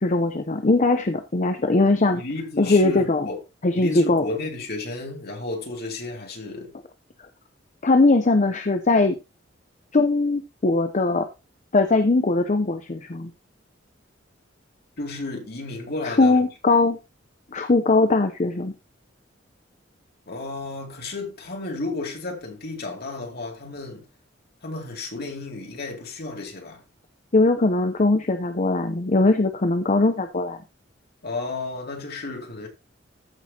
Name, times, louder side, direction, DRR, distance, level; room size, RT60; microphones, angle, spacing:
voice 1, 0.0-2.2 2.6-3.3 3.6-4.2 7.8-9.2 9.9-11.3 11.7-13.3 16.0-17.0 17.5-18.7 27.3-30.6, left 2 dB, 40° left, 0.7 m, -20 dB
voice 2, 2.1-3.4 3.7-6.7 15.0-16.9 20.3-24.1 24.6-26.8 31.2-32.7, left 3 dB, 55° left, 2.6 m, -33 dB
14.0 x 6.2 x 2.9 m
head